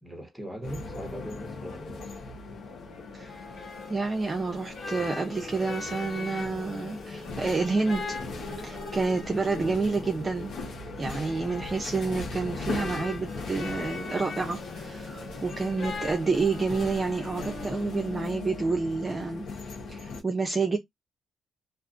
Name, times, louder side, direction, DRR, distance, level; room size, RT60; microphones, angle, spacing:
voice 1, 0.0-2.2, equal, ahead, 0.9 m, -40 dB
sound 1, 0.6-20.2, left 3 dB, 80° left, 0.9 m, -39 dB
sound 2, 2.9-18.2, left 3 dB, 55° left, 1.3 m, -41 dB
voice 2, 3.9-8.2 8.6-10.6 11.0-19.5 19.9-20.8, right 4 dB, 30° right, 0.5 m, -29 dB
2.4 x 2.3 x 2.5 m
cardioid pair, 90°, 0 cm